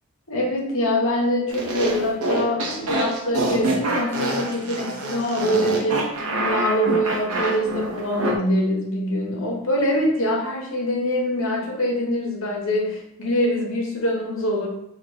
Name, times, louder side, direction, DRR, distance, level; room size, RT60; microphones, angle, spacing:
voice 1, 0.3-6.1 6.4-14.7, equal, 60° left, -1 dB, 1.0 m, -24 dB
sound 1, 1.5-8.3, right 1 dB, 80° right, 0.7 m, -26 dB
3.9 x 2.4 x 4.5 m, 0.81 s
head